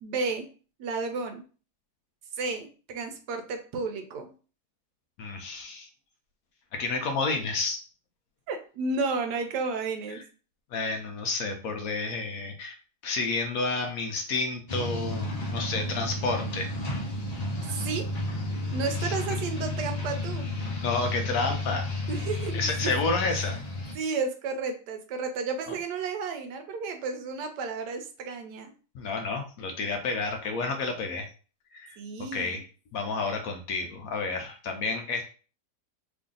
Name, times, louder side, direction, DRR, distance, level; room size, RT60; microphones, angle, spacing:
voice 1, 0.0-0.5 0.8-1.4 2.4-4.3 8.5-10.2 17.7-18.1 18.7-20.4 22.1-23.1 23.9-28.7 32.0-32.6, right 4 dB, 80° right, 6 dB, 1.3 m, -32 dB
voice 2, 5.2-5.9 6.7-7.8 10.1-10.2 10.7-12.8 13.0-16.7 19.0-19.2 20.8-21.9 22.5-23.6 25.7-25.8 28.9-31.3 31.7-32.6 32.9-35.2, left 3 dB, 70° left, 4 dB, 0.9 m, -30 dB
sound 1, 14.7-23.9, left 2 dB, 40° left, 0.6 m, -32 dB
3.2 x 2.6 x 3.7 m, 0.38 s
omnidirectional pair, 1.8 m